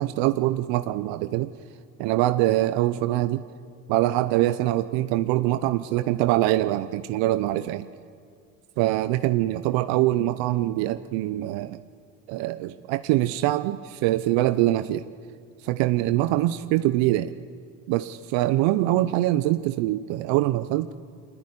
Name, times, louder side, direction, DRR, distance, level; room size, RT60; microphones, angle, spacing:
voice 1, 0.0-1.5 2.0-3.4 3.9-7.9 8.8-11.8 12.3-15.0 15.6-17.3 17.9-20.9, right 15 dB, 65° right, 11 dB, 0.9 m, -24 dB
23.5 x 20.0 x 9.9 m, 2.2 s
hypercardioid pair, 85°, 49 cm